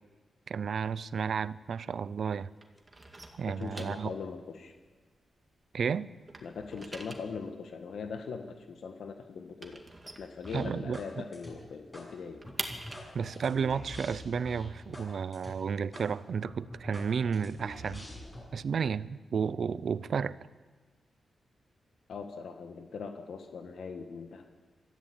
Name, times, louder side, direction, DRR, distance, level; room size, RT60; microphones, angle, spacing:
voice 1, 0.5-2.5 3.4-4.1 5.7-6.1 10.5-11.0 13.1-18.1 18.5-20.4, right 6 dB, 60° right, 0.6 m, -32 dB
sound 1, 0.8-2.3 2.5-5.8 6.1-11.1 11.4-11.5 11.8-15.5, right 2 dB, 20° right, 2.1 m, -46 dB
voice 2, 3.5-4.7 6.4-9.8 10.2-12.4 22.1-24.5, left 5 dB, 75° left, 1.5 m, -41 dB
sound 2, 10.4-11.1 11.3-12.1 12.4-15.1 15.3-15.5 15.9-16.1 16.4-18.4, equal, 15° left, 7.4 m, -45 dB
23.5 x 14.0 x 8.7 m
wide cardioid pair, 130°, 0 cm